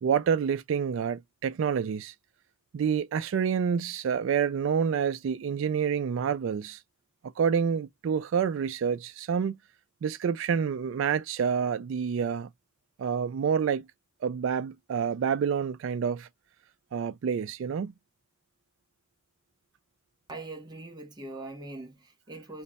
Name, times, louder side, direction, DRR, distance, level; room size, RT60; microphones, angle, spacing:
voice 1, 0.0-2.1 2.7-6.8 7.4-9.6 10.0-12.5 13.0-13.8 14.2-16.3 16.9-17.9, right 7 dB, 65° right, 0.3 m, -28 dB
voice 2, 20.3-22.6, right 2 dB, 20° right, 0.8 m, -42 dB
3.2 x 2.0 x 4.0 m
head